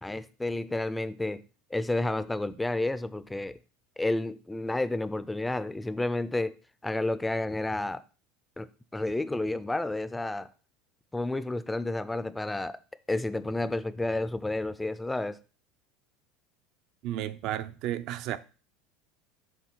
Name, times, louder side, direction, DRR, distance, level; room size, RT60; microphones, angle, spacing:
voice 1, 0.0-1.4 1.7-3.6 4.0-6.5 6.8-8.0 8.6-8.7 8.9-10.5 11.1-12.8 13.1-15.4, left 2 dB, 10° left, 0.4 m, -30 dB
voice 2, 17.0-18.4, right 12 dB, 60° right, 0.5 m, -33 dB
7.2 x 3.6 x 4.4 m
supercardioid pair, 115°, 0 cm